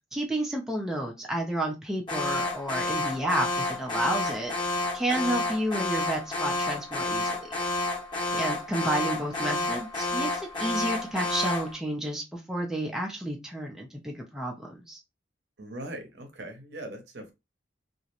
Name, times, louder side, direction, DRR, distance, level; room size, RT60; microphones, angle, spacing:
voice 1, 0.1-7.5 8.4-15.0, right 1 dB, 5° right, 0.4 m, -31 dB
Alarm, 2.1-11.8, left 2 dB, 25° left, 0.8 m, -30 dB
voice 2, 15.6-17.3, right 1 dB, 60° right, 0.7 m, -40 dB
2.4 x 2.0 x 2.8 m
head